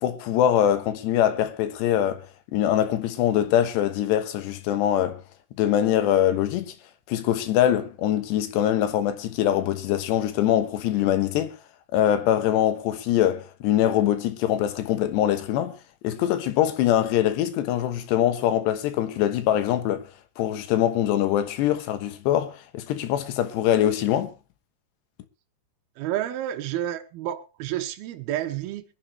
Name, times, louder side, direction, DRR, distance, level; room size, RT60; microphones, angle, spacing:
voice 1, 0.0-2.3 2.5-5.2 5.6-6.7 7.1-11.6 11.9-15.8 16.0-20.1 20.4-24.3, left 11 dB, 90° left, 3.4 m, -23 dB
voice 2, 26.0-28.8, right 12 dB, 70° right, 2.9 m, -30 dB
23.0 x 10.5 x 3.2 m
omnidirectional pair, 4.8 m